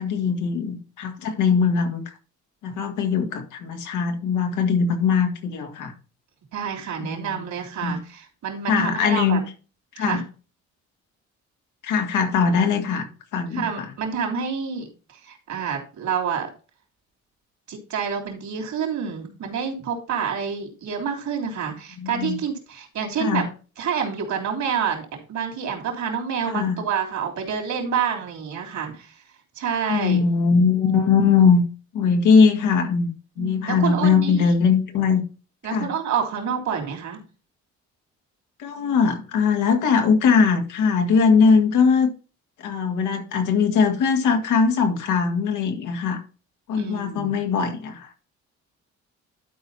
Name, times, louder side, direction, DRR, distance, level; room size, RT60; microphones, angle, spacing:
voice 1, 0.0-2.0 2.6-5.9 7.0-7.4 7.8-8.0 8.7-9.4 9.9-10.2 11.8-13.1 13.3-13.7 22.0-22.4 23.2-23.5 26.5-26.8 29.9-31.6 31.9-35.2 35.6-35.9 38.6-42.1 42.6-46.2 46.7-48.1, left 5 dB, 85° left, 1.9 m, -20 dB
voice 2, 6.5-9.4 10.0-10.2 13.5-14.9 15.2-16.5 17.7-23.4 23.8-29.2 29.5-30.2 33.4-34.5 35.6-37.2 46.8-47.4, right 7 dB, 70° right, 3.4 m, -28 dB
12.0 x 4.7 x 4.1 m
cardioid pair, 90°, 30 cm